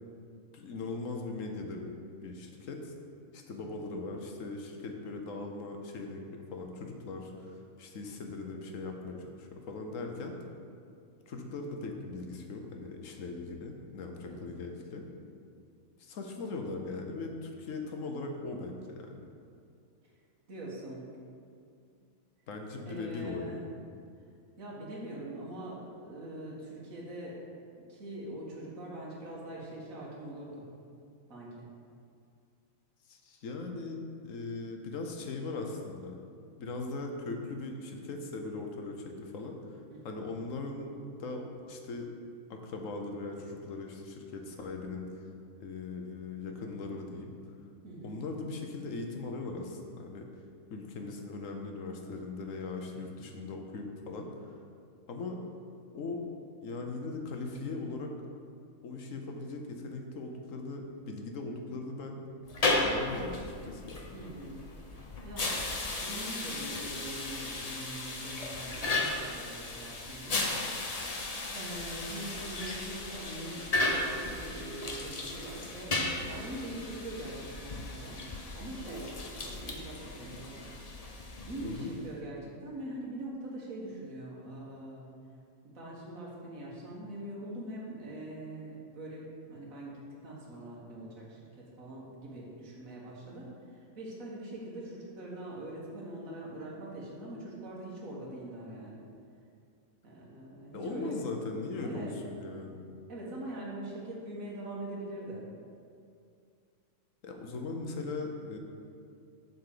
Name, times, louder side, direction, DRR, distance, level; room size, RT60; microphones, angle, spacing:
voice 1, 0.5-1.9 2.2-2.9 3.3-10.3 11.3-15.0 16.0-19.3 22.5-23.7 33.1-36.2 36.6-39.8 40.0-40.9 41.2-42.1 42.5-45.3 45.6-47.3 48.0-50.3 50.7-54.5 55.1-55.4 55.9-56.2 56.6-58.1 58.8-62.2 62.8-64.1 81.6-81.9 100.7-102.8 107.2-108.6, left 3 dB, 70° left, 3 dB, 1.2 m, -39 dB
voice 2, 3.5-3.8 14.2-14.4 20.0-20.1 20.5-21.0 22.8-23.7 24.6-27.4 27.9-30.6 31.3-31.6 39.9-40.1 47.8-48.2 64.1-64.6 65.2-70.4 71.5-78.3 78.5-79.1 79.4-80.7 81.5-85.1 85.6-99.1 100.0-101.1 101.8-102.1 103.1-105.4, right 1 dB, 75° right, -5 dB, 1.9 m, -43 dB
sound 1, 62.4-82.1, left 2 dB, 35° left, 0.7 m, -35 dB
7.9 x 4.2 x 6.7 m, 2.3 s
omnidirectional pair, 1.4 m